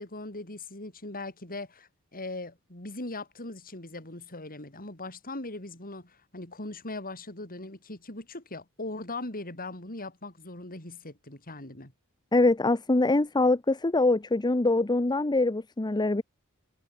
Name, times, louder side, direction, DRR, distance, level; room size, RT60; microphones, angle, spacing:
voice 1, 0.0-11.9, left 2 dB, 40° left, 8.0 m, -40 dB
voice 2, 12.3-16.2, left 2 dB, 20° left, 0.7 m, -24 dB
head